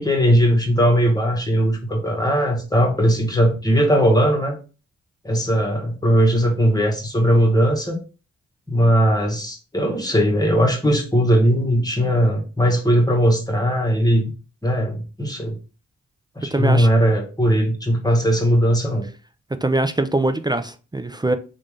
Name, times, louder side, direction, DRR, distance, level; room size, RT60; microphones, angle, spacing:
voice 1, 0.0-4.6 5.2-8.0 8.7-14.3 14.6-15.6 16.4-19.0, equal, 15° left, 1.3 m, -19 dB
voice 2, 16.5-16.9 19.6-21.4, right 2 dB, 15° right, 0.4 m, -22 dB
3.4 x 2.6 x 3.3 m
cardioid pair, 50°, 30 cm